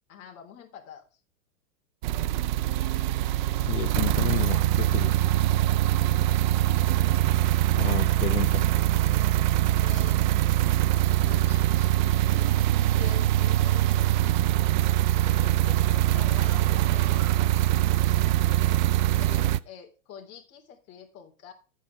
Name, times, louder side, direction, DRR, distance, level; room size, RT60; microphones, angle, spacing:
voice 1, 0.1-1.2 9.8-10.2 11.2-12.5 12.9-14.4 15.2-18.5 19.2-21.5, left 8 dB, 35° left, 3 dB, 3.5 m, -47 dB
sound 1, 2.0-19.6, right 14 dB, 35° right, 0.4 m, -23 dB
voice 2, 3.7-5.5 7.8-8.7, left 13 dB, 55° left, 6 dB, 1.2 m, -32 dB
Zipper (clothing), 16.1-18.8 19.4-19.5, right 14 dB, 55° right, 1.2 m, -46 dB
12.0 x 9.3 x 3.3 m, 0.33 s
hypercardioid pair, 130°, 43 cm